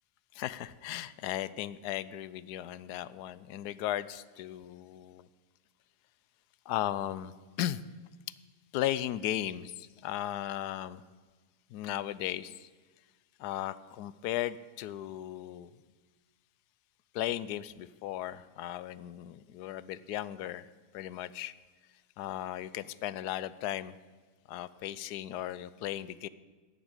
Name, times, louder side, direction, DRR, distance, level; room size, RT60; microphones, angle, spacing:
voice 1, 0.3-5.3 6.7-7.8 8.7-11.0 11.7-12.7 13.4-15.7 17.1-20.6 20.9-21.5 22.2-23.9 24.5-26.3, left 12 dB, 90° left, 17 dB, 1.2 m, -36 dB
10.0 x 9.3 x 8.9 m, 1.3 s
omnidirectional pair, 1.7 m